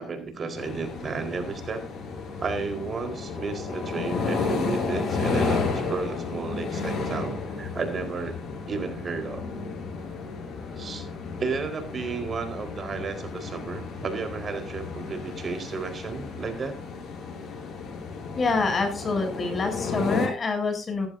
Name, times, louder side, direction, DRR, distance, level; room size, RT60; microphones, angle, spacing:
voice 1, 0.0-1.9 2.4-8.4 8.7-9.5 10.8-11.1 11.4-16.8, right 4 dB, 45° right, 6 dB, 4.4 m, -33 dB
sound 1, 0.6-20.3, left 4 dB, 70° left, 6.9 m, -32 dB
voice 2, 18.4-21.1, left 3 dB, 40° left, 5 dB, 7.8 m, -26 dB
17.5 x 14.5 x 2.7 m, 0.31 s
cardioid pair, 90°, 0 cm